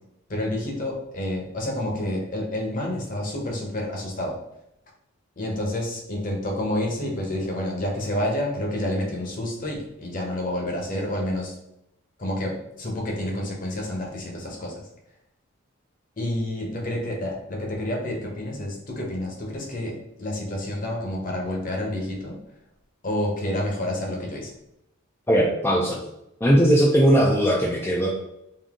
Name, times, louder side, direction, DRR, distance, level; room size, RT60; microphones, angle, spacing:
voice 1, 0.3-4.4 5.4-11.6 12.2-14.8 16.2-22.4 23.0-24.5, left 1 dB, 40° left, -1 dB, 0.9 m, -29 dB
voice 2, 25.3-26.0 26.4-28.1, equal, 10° left, -4 dB, 0.4 m, -19 dB
3.7 x 2.6 x 3.6 m, 0.82 s
head